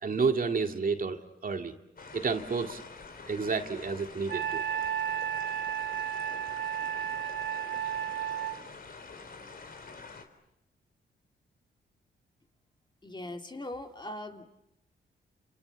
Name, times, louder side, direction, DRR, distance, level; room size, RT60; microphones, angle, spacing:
voice 1, 0.0-1.7 2.1-2.8 3.3-4.6, right 4 dB, 45° right, 5 dB, 2.3 m, -30 dB
sound 1, 2.0-10.2, left 4 dB, 50° left, 3.8 m, -46 dB
Wind instrument woodwind instrument, 4.3-8.6, right 9 dB, 60° right, 0.9 m, -33 dB
voice 2, 13.0-14.5, left 1 dB, 25° left, 4 dB, 3.0 m, -40 dB
28.5 x 27.5 x 7.1 m, 0.86 s
cardioid pair, 70°, 20 cm